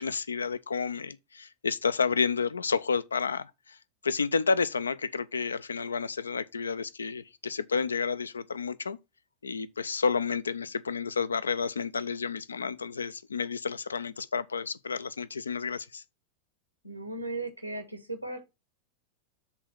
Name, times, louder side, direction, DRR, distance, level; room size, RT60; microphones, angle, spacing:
voice 1, 0.0-3.8 4.0-9.0 9.4-16.0, left 5 dB, 75° left, 0.5 m, -30 dB
voice 2, 16.8-18.4, right 2 dB, 90° right, 1.5 m, -36 dB
7.3 x 3.9 x 5.7 m
figure-of-eight pair, 90°, 0 cm